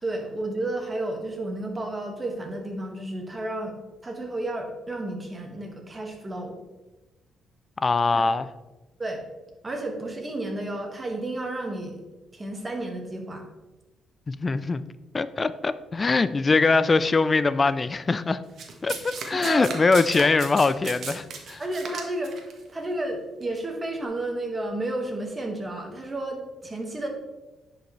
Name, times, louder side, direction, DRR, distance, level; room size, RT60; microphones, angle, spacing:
voice 1, 0.0-3.7 4.0-6.6 8.1-8.2 9.0-9.2 9.6-12.0 12.3-13.5 19.3-19.7 20.2-20.3 21.6-27.1, right 1 dB, 25° right, 1.6 m, -32 dB
voice 2, 7.8-8.5 14.3-14.8 15.1-18.4 18.8-21.6, left 3 dB, 30° left, 0.3 m, -22 dB
Domestic sounds home sounds, 18.6-22.5 23.4-23.6, right 5 dB, 60° right, 1.3 m, -36 dB
10.0 x 5.2 x 3.1 m
cardioid pair, 90°, 0 cm